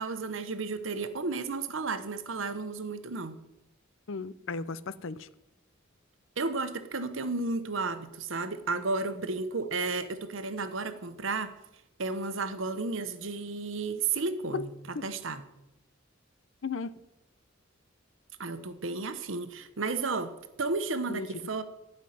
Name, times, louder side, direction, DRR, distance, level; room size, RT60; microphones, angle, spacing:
voice 1, 0.0-3.4 6.4-11.5 12.0-15.4 18.4-21.6, right 3 dB, 70° right, 1.0 m, -33 dB
voice 2, 4.1-5.3 14.5-14.7 14.9-15.1 16.6-17.0 21.1-21.3, left 4 dB, 70° left, 0.6 m, -35 dB
12.5 x 5.6 x 9.3 m
head